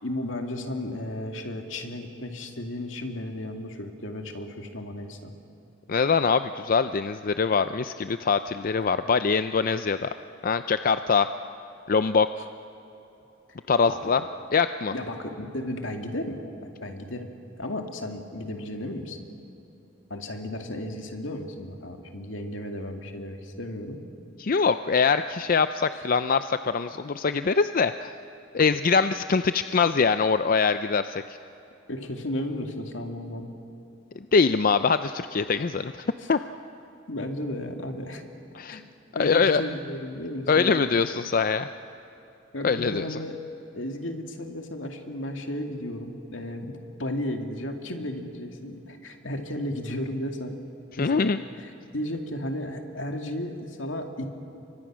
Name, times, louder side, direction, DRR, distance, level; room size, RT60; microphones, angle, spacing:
voice 1, 0.0-5.3 13.9-14.1 14.9-16.4 16.8-17.3 17.6-19.2 20.1-24.0 25.9-26.0 31.9-33.5 37.1-38.2 38.7-38.8 39.2-41.0 42.5-43.3 43.7-50.5 51.0-54.3, left 1 dB, 80° left, 4 dB, 2.4 m, -34 dB
voice 2, 5.9-10.1 10.4-11.3 11.9-12.3 13.7-14.2 14.5-14.9 24.4-28.1 28.5-31.2 34.3-36.4 38.6-38.8 39.2-39.6 40.5-41.7 42.6-43.2 51.0-51.4, left 5 dB, 45° left, 11 dB, 0.5 m, -23 dB
30.0 x 24.0 x 6.2 m, 2.9 s
head